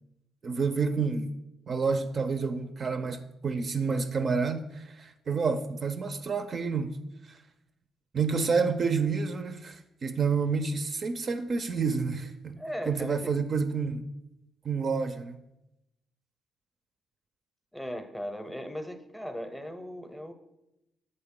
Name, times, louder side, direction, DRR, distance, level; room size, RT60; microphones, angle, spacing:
voice 1, 0.4-1.3 1.7-7.0 7.3-7.4 8.1-12.6 12.9-14.1 14.6-15.4, right 5 dB, 45° right, 0.4 m, -29 dB
voice 2, 12.6-13.5 17.7-20.3, equal, 5° left, 0.6 m, -38 dB
7.7 x 4.1 x 3.6 m
cardioid pair, 90°, 0 cm